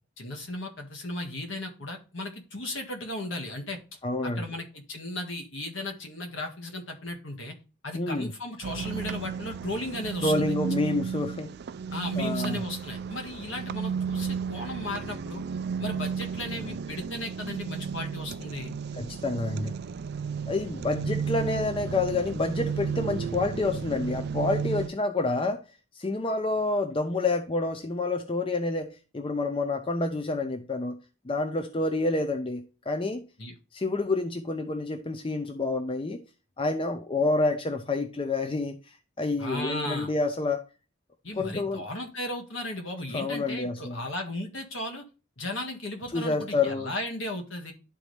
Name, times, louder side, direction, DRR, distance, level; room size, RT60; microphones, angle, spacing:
voice 1, 0.2-7.5 7.8-10.5 11.9-15.4 15.8-18.7 33.4-33.5 39.4-40.1 41.2-45.0 45.4-47.7, left 1 dB, 65° left, 1.6 m, -36 dB
voice 2, 4.0-4.4 7.9-8.3 10.2-11.5 12.2-12.6 19.0-19.7 20.5-25.6 25.9-31.0 31.2-33.3 33.7-36.2 36.6-40.6 41.4-41.8 43.1-44.0 46.1-46.9, left 3 dB, 25° left, 0.5 m, -28 dB
sound 1, 8.6-24.9, right 6 dB, 50° right, 0.4 m, -33 dB
11.0 x 4.1 x 3.2 m
head